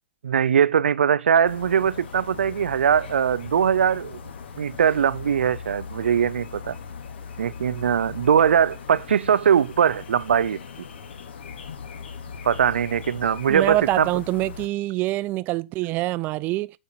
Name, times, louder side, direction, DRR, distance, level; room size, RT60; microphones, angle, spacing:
voice 1, 0.2-4.2 4.6-6.8 7.4-10.6 12.4-14.1, right 8 dB, 80° right, 0.6 m, -21 dB
sound 1, 1.4-14.7, left 6 dB, 70° left, 2.4 m, -39 dB
voice 2, 13.5-16.7, right 17 dB, 30° right, 0.5 m, -25 dB
8.6 x 5.5 x 5.8 m
hypercardioid pair, 130°, 6 cm